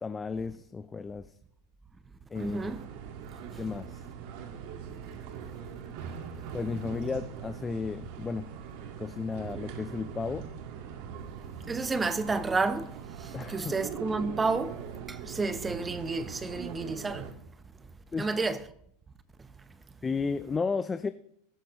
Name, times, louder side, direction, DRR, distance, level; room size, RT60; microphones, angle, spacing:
voice 1, 0.0-1.3 2.3-2.7 3.6-4.0 6.5-8.5 9.0-10.5 13.3-13.7 18.1-18.3 20.0-21.1, left 5 dB, 20° left, 0.6 m, -33 dB
sound 1, 2.3-17.3, right 7 dB, 60° right, 1.9 m, -41 dB
voice 2, 2.4-2.9 3.5-3.6 11.7-17.3 18.2-18.6, right 3 dB, 15° right, 0.9 m, -31 dB
19.5 x 11.0 x 3.1 m
hypercardioid pair, 110°, 0 cm